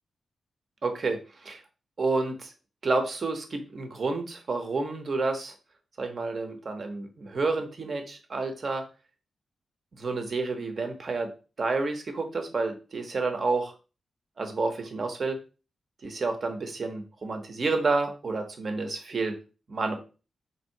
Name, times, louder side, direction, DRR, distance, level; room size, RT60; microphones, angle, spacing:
voice 1, 0.8-1.2 1.4-1.6 2.0-2.5 2.8-5.5 6.0-8.8 10.0-11.3 11.6-13.7 14.4-15.4 16.0-19.3 19.7-20.0, right 3 dB, 40° right, 5 dB, 0.8 m, -29 dB
3.4 x 2.7 x 4.5 m, 0.34 s
wide cardioid pair, 140°, 0 cm